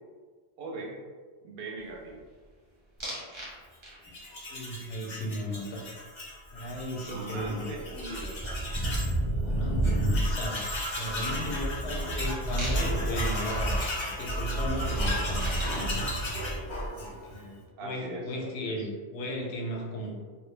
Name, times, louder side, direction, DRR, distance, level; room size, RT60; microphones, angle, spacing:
voice 1, 0.6-1.0 1.4-2.3 7.0-8.7 17.8-18.3 18.6-18.9, right 2 dB, 65° right, -1 dB, 0.7 m, -40 dB
sound 1, 3.0-3.5 3.8-4.3 6.7-6.8 7.1-17.1, right 1 dB, 30° right, 0.8 m, -31 dB
Tools, 4.0-9.2 9.5-9.6 9.8-17.4, left 1 dB, 40° left, 0.4 m, -36 dB
voice 2, 4.5-5.9 6.5-7.7 9.4-16.1 17.0-20.1, left 1 dB, 85° left, 0 dB, 0.9 m, -36 dB
2.1 x 2.1 x 3.1 m, 1.5 s
omnidirectional pair, 1.1 m